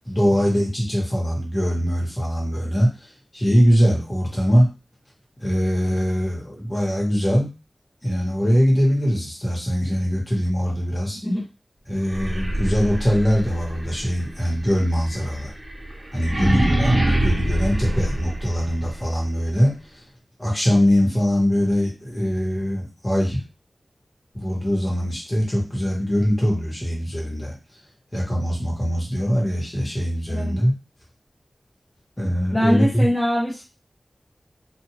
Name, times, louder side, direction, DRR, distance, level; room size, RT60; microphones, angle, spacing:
voice 1, 0.0-2.9 3.3-4.7 5.4-7.5 8.0-11.2 11.9-15.5 16.1-20.0 20.4-23.4 24.3-27.5 28.1-30.7 32.2-33.1, equal, 25° left, -4 dB, 1.4 m, -22 dB
sound 1, 12.0-18.9, right 1 dB, 45° right, 0.9 m, -25 dB
voice 2, 16.3-16.7 30.3-30.6 32.5-33.6, equal, 10° left, -5 dB, 0.8 m, -23 dB
2.6 x 2.6 x 2.9 m, 0.30 s
wide cardioid pair, 75°, 0 cm